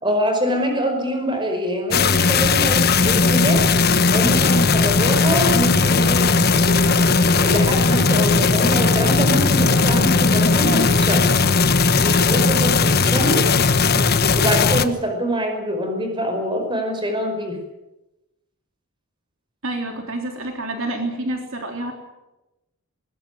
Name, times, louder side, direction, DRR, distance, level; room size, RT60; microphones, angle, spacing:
voice 1, 0.0-3.6 4.1-7.1 7.4-11.3 12.0-13.4 14.4-17.6, equal, 20° right, 4 dB, 5.3 m, -24 dB
sound 1, 1.9-14.9, left 4 dB, 45° left, 1.2 m, -17 dB
voice 2, 19.6-21.9, right 2 dB, 65° right, 3 dB, 3.6 m, -28 dB
21.0 x 20.0 x 9.3 m, 0.98 s
head